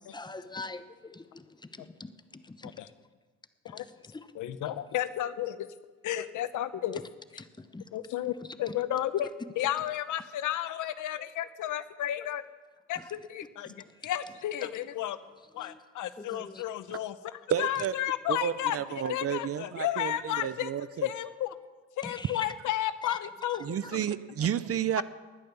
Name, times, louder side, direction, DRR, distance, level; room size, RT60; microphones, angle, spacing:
voice 1, 0.1-1.4 1.7-2.7 3.8-3.9 4.1-4.3 6.9-7.0 7.6-7.9 8.7-8.8 13.0-13.1 15.6-15.8 16.2-16.6 22.0-22.4 23.1-23.2 23.5-23.9, left 3 dB, 15° left, 1.0 m, -44 dB
voice 2, 4.3-5.7 6.0-7.0 7.3-7.4 7.9-9.3 9.6-12.4 12.9-15.2 15.5-20.7 21.0-21.5 22.0-24.0 25.0-25.1, left 12 dB, 80° left, 0.9 m, -33 dB
voice 3, 17.5-18.0 18.3-21.1 22.2-22.7 23.6-25.0, right 9 dB, 50° right, 0.7 m, -31 dB
19.5 x 10.5 x 7.0 m
cardioid pair, 90°, 30 cm